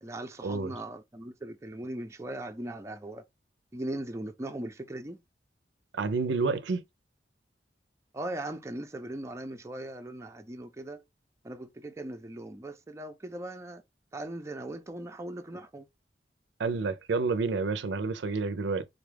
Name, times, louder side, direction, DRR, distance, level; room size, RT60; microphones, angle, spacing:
voice 1, 0.0-3.2 3.7-5.2 8.1-11.0 11.4-13.8 14.1-15.9, right 1 dB, 15° right, 0.4 m, -39 dB
voice 2, 5.9-6.8 16.6-18.9, right 4 dB, 90° right, 0.5 m, -29 dB
4.0 x 2.3 x 3.3 m
head